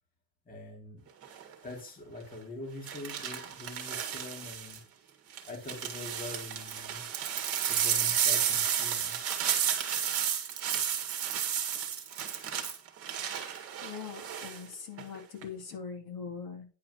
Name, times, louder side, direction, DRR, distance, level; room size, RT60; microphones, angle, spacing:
voice 1, 0.5-1.1 1.6-4.8 5.4-7.1 7.7-9.2, left 2 dB, 20° left, 0 dB, 2.7 m, -44 dB
sound 1, 1.2-1.5 2.9-4.8 5.3-14.6 15.0-15.4, right 9 dB, 35° right, 1.9 m, -32 dB
voice 2, 13.8-16.7, left 6 dB, 55° left, 1 dB, 3.6 m, -42 dB
10.5 x 4.9 x 5.5 m, 0.34 s
cardioid pair, 160°, 42 cm